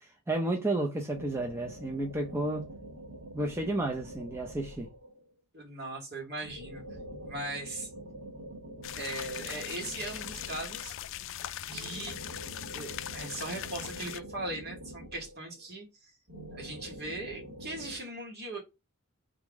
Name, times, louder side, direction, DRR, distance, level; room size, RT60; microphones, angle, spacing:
voice 1, 0.0-2.8 3.3-4.9, right 2 dB, 10° right, 0.6 m, -32 dB
sound 1, 1.1-5.3 6.4-11.0 11.7-15.7 16.3-18.0, right 1 dB, 75° right, 1.4 m, -46 dB
voice 2, 5.5-6.8 7.2-7.9 9.0-10.9 11.7-12.2 12.7-16.2 16.5-18.6, right 2 dB, 50° right, 2.0 m, -39 dB
sound 2, 8.8-14.2, left 12 dB, 65° left, 0.4 m, -40 dB
3.7 x 3.6 x 3.5 m
head